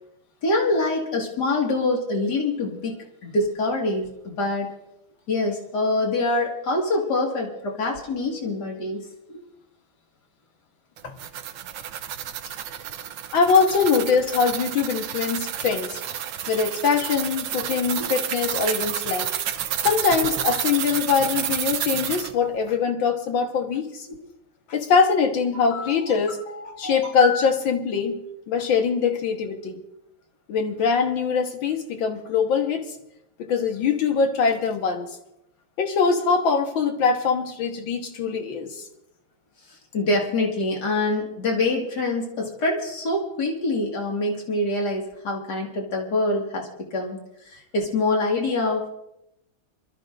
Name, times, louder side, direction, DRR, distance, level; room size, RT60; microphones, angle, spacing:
voice 1, 0.4-4.7 5.3-9.4 18.0-18.1 24.1-24.2 25.7-26.0 26.5-27.4 39.7-47.2 47.5-48.9, left 2 dB, 55° left, 0 dB, 2.6 m, -25 dB
sound 1, 11.0-22.3, right 10 dB, 70° right, 1.4 m, -30 dB
voice 2, 13.3-16.0 16.5-19.3 19.8-24.1 24.7-26.4 26.8-28.1 28.5-29.8 30.5-32.8 33.4-35.1 35.8-38.8, left 5 dB, 75° left, 4 dB, 2.1 m, -22 dB
26.5 x 13.0 x 2.6 m, 0.85 s
omnidirectional pair, 2.1 m